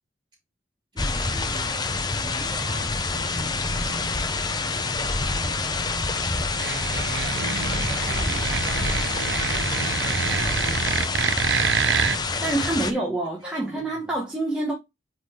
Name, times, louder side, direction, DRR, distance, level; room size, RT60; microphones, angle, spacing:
voice 1, 0.9-4.1 5.0-5.8 7.6-9.3 10.3-11.5 11.8-12.2 12.7-14.2, right 1 dB, 20° right, 3.5 m, -43 dB
sound 1, 1.0-12.9, left 3 dB, 20° left, 0.7 m, -27 dB
sound 2, 3.1-13.8, equal, 85° right, 1.2 m, -42 dB
sound 3, 6.5-12.2, right 6 dB, 60° right, 0.6 m, -26 dB
voice 2, 12.4-14.7, right 2 dB, 5° right, 1.4 m, -26 dB
8.3 x 4.0 x 3.0 m
head